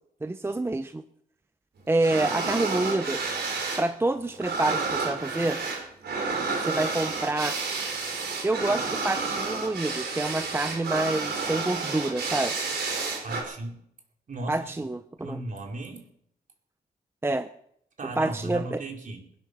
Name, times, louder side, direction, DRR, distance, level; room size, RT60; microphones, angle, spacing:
voice 1, 0.2-1.0 1.9-3.2 3.8-5.6 6.6-7.6 8.4-12.6 14.5-15.4 17.2-17.5 18.2-18.8, right 2 dB, 15° right, 10 dB, 0.7 m, -27 dB
sound 1, 2.0-3.9 4.1-13.4, right 4 dB, 80° right, 4.6 m, -30 dB
voice 2, 13.2-13.8 14.3-14.7 15.2-16.0 18.0-19.2, right 2 dB, 50° right, 2 dB, 4.3 m, -36 dB
22.5 x 9.4 x 6.8 m, 0.69 s
wide cardioid pair, 115°, 17 cm